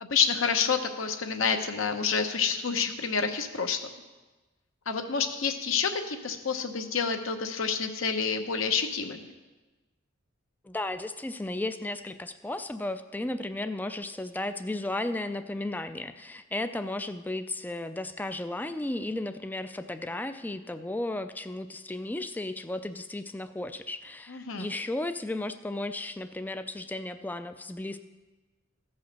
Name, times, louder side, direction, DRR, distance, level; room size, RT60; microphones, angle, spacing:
voice 1, 0.0-3.8 4.9-9.2 24.3-24.7, left 6 dB, 80° left, 6 dB, 1.0 m, -28 dB
voice 2, 10.6-28.0, left 2 dB, 10° left, 9 dB, 0.3 m, -34 dB
14.5 x 5.6 x 6.6 m, 1.2 s
head